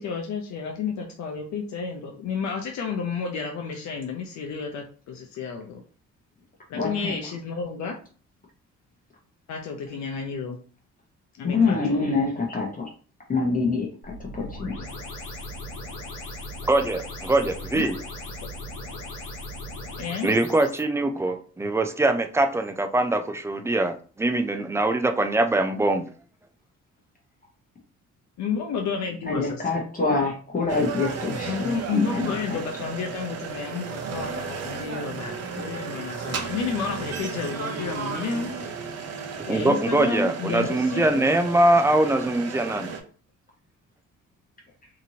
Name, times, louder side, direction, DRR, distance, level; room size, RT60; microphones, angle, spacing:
voice 1, 0.0-5.8 6.7-7.9 9.5-10.6 11.4-12.0 17.7-17.8 20.0-20.3 28.4-29.6 31.5-38.5 39.4-41.3, left 5 dB, 70° left, 2 dB, 0.6 m, -31 dB
voice 2, 6.7-7.1 11.4-12.9 13.3-14.8 29.2-31.7 32.1-32.6, left 4 dB, 30° left, -1 dB, 0.8 m, -26 dB
sound 1, 14.0-20.8, left 1 dB, 85° left, 1.0 m, -38 dB
voice 3, 16.7-17.0 17.3-17.9 20.2-26.0 31.5-31.7 31.9-32.1 39.5-42.9, right 2 dB, 10° right, 7 dB, 0.3 m, -23 dB
sound 2, 30.7-43.0, right 5 dB, 55° right, 0.6 m, -34 dB
2.9 x 2.5 x 2.7 m, 0.41 s
cardioid pair, 90°, 30 cm